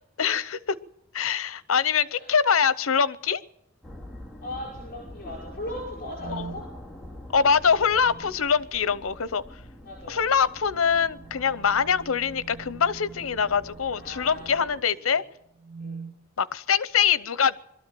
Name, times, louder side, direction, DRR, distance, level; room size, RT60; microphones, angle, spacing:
voice 1, 0.2-0.6 1.1-3.4 6.3-6.5 7.3-9.4 10.1-15.2 16.4-17.5, left 6 dB, 85° left, 17 dB, 0.8 m, -24 dB
sound 1, 3.8-14.8, left 1 dB, 5° right, 2.1 m, -45 dB
voice 2, 4.4-6.7 9.8-10.2 14.0-14.5 15.0-15.2 15.8-16.1, left 1 dB, 45° left, -2 dB, 5.6 m, -38 dB
sound 2, 6.2-6.6 7.9-8.5 10.7-14.8 15.5-16.2, right 4 dB, 50° right, 1.4 m, -44 dB
22.0 x 13.0 x 9.1 m, 0.80 s
head